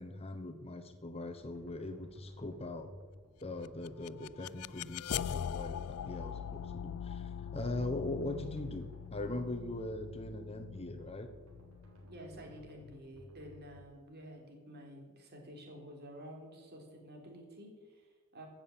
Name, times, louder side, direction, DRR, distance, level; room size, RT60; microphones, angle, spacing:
voice 1, 0.0-2.9 3.4-11.3, left 2 dB, 25° left, 7 dB, 1.0 m, -41 dB
sound 1, 1.3-13.8, left 1 dB, 70° right, 4.1 m, -55 dB
sound 2, 3.6-12.6, left 9 dB, 75° left, 0.3 m, -42 dB
voice 2, 12.0-18.5, equal, 50° right, 1 dB, 3.7 m, -51 dB
15.0 x 7.5 x 8.8 m, 1.5 s
head